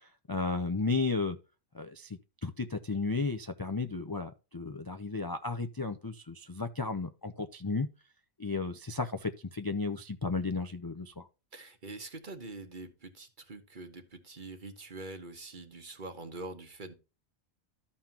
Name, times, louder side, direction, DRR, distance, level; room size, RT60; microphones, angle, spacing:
voice 1, 0.0-1.4 1.7-7.9 8.4-11.3, left 3 dB, 30° left, 0.4 m, -34 dB
voice 2, 11.5-16.9, right 2 dB, 40° right, 1.3 m, -44 dB
13.5 x 5.5 x 2.8 m
omnidirectional pair, 1.3 m